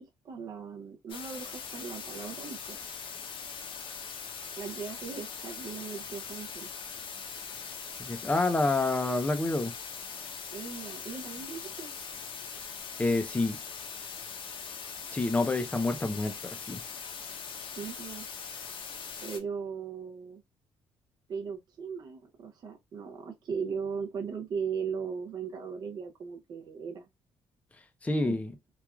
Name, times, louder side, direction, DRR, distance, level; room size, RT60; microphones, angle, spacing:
voice 1, 0.0-2.8 4.6-6.7 10.5-11.9 17.7-18.3 19.2-20.4 21.3-27.1 28.2-28.4, right 6 dB, 45° right, 0.5 m, -38 dB
sound 1, 1.1-19.4, left 6 dB, 60° left, 0.7 m, -41 dB
voice 2, 8.0-9.7 13.0-13.6 15.1-16.8 28.0-28.5, left 2 dB, 15° left, 0.5 m, -28 dB
3.1 x 2.4 x 2.2 m
cardioid pair, 145°, 10 cm